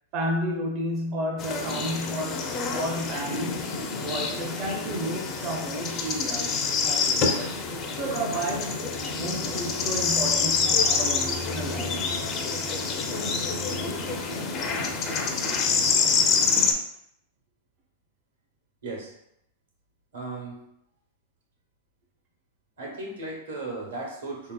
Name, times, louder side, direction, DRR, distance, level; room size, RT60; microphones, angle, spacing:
voice 1, 0.1-3.8 4.0-6.6 6.8-7.6 8.0-12.2, right 1 dB, 40° right, 0.5 m, -32 dB
sound 1, 1.4-16.7, left 5 dB, 35° left, 0.4 m, -27 dB
voice 2, 20.1-20.6 22.8-24.5, right 2 dB, 85° right, 1.0 m, -36 dB
3.2 x 2.7 x 2.2 m
hypercardioid pair, 115°, 0 cm